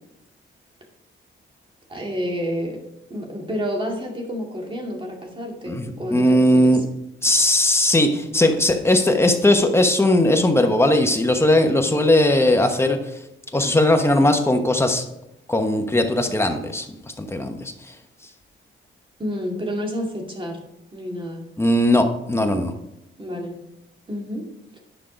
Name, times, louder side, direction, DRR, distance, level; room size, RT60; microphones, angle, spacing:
voice 1, 1.9-2.8 3.1-6.8 19.2-20.7 20.9-21.4 23.2-23.6 24.1-24.5 24.7-24.8, equal, 25° right, 1 dB, 2.2 m, -29 dB
voice 2, 5.7-6.8 7.2-13.0 13.5-15.0 15.5-16.9 17.2-17.9 21.6-22.7, left 1 dB, 10° left, 5 dB, 1.1 m, -18 dB
10.5 x 5.6 x 5.1 m, 0.86 s
cardioid pair, 115°, 20 cm